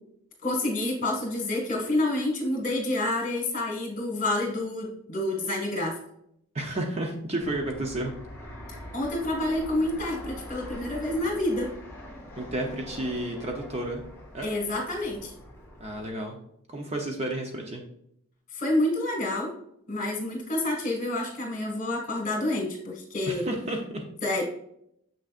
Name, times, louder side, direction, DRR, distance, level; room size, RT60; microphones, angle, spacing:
voice 1, 0.4-6.0 8.9-11.7 14.4-15.3 18.5-19.5 19.9-23.4 24.2-24.4, left 1 dB, 35° left, 0 dB, 1.9 m, -28 dB
voice 2, 6.5-8.1 12.4-14.0 14.3-14.5 15.8-16.4 16.7-17.8 23.3-24.0, right 1 dB, 30° right, 2 dB, 0.7 m, -31 dB
Fixed-wing aircraft airplane, 7.4-16.1, left 1 dB, 10° left, 1.8 m, -43 dB
7.0 x 6.2 x 2.5 m, 0.73 s
head